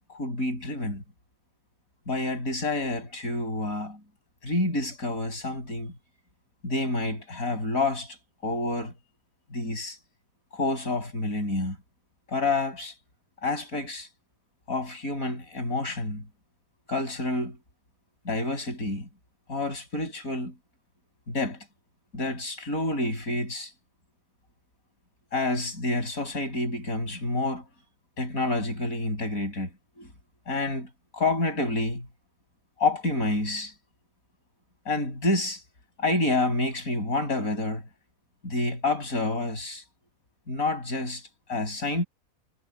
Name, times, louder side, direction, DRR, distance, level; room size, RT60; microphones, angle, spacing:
voice 1, 0.1-1.0 2.1-4.0 4.4-5.9 6.6-8.2 8.4-8.9 9.5-10.0 10.5-11.8 12.3-12.9 13.4-14.1 14.7-16.3 16.9-17.6 18.3-19.1 19.5-20.5 21.3-21.7 22.1-23.7 25.3-27.7 28.2-30.1 30.5-32.1 32.8-33.7 34.9-35.6 36.0-37.9 38.4-39.8 40.5-41.2 41.5-42.1, left 2 dB, 70° left, 7.1 m, -28 dB
omnidirectional pair, 1.5 m